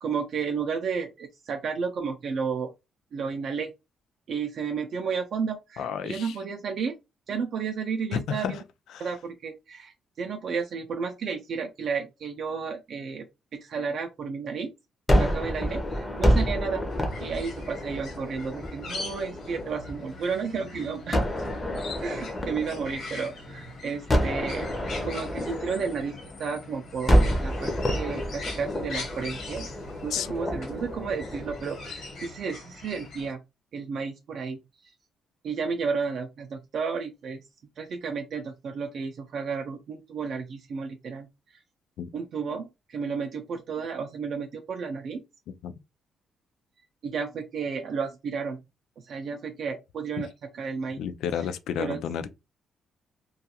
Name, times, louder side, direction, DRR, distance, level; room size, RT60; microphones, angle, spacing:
voice 1, 0.0-2.7 3.1-3.7 4.3-6.9 7.3-8.6 9.0-13.3 13.5-14.7 15.2-16.8 17.2-21.3 22.0-24.7 25.0-29.7 30.0-33.4 33.7-34.6 35.4-37.4 37.8-41.3 42.1-45.2 47.0-48.6 49.1-50.3 50.5-51.0 51.8-52.0, right 5 dB, 55° right, 0.3 m, -32 dB
voice 2, 5.8-6.4 8.1-8.6 8.9-9.1 30.1-30.3 42.0-42.1 45.6-45.7 51.0-52.3, left 8 dB, 80° left, 0.3 m, -31 dB
Gunshot gunfire, 15.1-20.2 21.1-23.5 24.1-26.6 27.1-32.3, equal, 15° left, 0.5 m, -28 dB
sound 1, 16.9-33.3, left 3 dB, 65° left, 1.1 m, -42 dB
2.3 x 2.3 x 2.7 m
cardioid pair, 155°, 0 cm